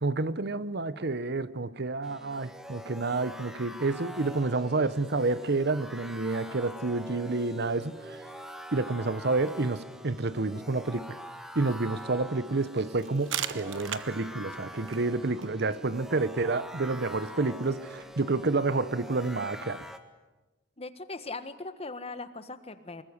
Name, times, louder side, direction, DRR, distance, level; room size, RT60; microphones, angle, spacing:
voice 1, 0.0-8.2 8.7-11.2 11.5-19.8, right 3 dB, 60° right, 1.0 m, -29 dB
sound 1, 2.0-20.0, equal, 5° right, 1.7 m, -44 dB
sound 2, 13.0-18.5, right 10 dB, 80° right, 1.1 m, -41 dB
voice 2, 20.8-23.0, left 3 dB, 30° left, 1.5 m, -39 dB
24.5 x 21.5 x 9.8 m
head